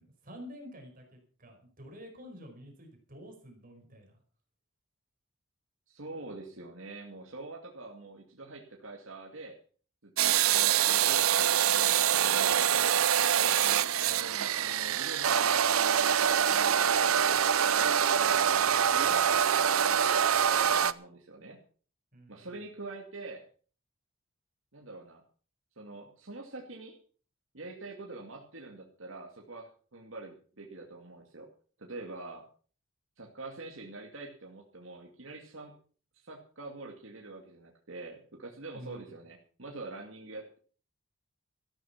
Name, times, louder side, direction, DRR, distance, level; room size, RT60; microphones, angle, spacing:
voice 1, 0.0-4.2 22.1-22.6 38.7-39.0, equal, 40° right, 3 dB, 4.9 m, -49 dB
voice 2, 5.9-9.6 10.0-13.1 13.4-15.5 16.1-17.3 17.6-21.6 22.3-23.4 24.7-25.2 25.8-27.0 27.5-31.5 31.8-32.5 33.2-35.7 36.1-40.6, right 2 dB, 65° right, 0 dB, 2.4 m, -45 dB
sound 1, 10.2-20.9, right 9 dB, 85° right, 0.7 m, -25 dB
14.0 x 12.5 x 5.8 m, 0.42 s
head